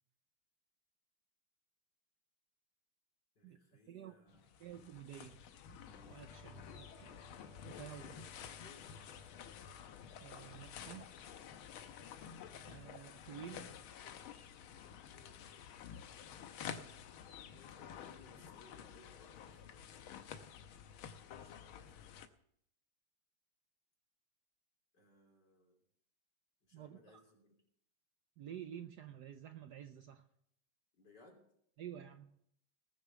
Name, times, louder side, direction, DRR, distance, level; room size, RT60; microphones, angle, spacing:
voice 1, 3.4-4.6 8.0-9.0 17.5-19.9 21.2-22.3 24.9-25.8 26.7-27.5 31.0-31.4, left 3 dB, 55° left, 0 dB, 4.0 m, -64 dB
voice 2, 3.9-4.2 4.6-5.4 5.7-7.2 7.7-8.1 10.2-11.1 12.7-13.7 26.7-27.2 28.4-30.2 31.8-32.3, right 10 dB, 65° right, 8 dB, 1.1 m, -51 dB
sound 1, 4.3-22.3, left 8 dB, 85° left, 1.7 m, -51 dB
sound 2, 5.9-13.3, left 1 dB, ahead, 0.9 m, -65 dB
19.5 x 6.6 x 6.9 m, 0.70 s
omnidirectional pair, 2.2 m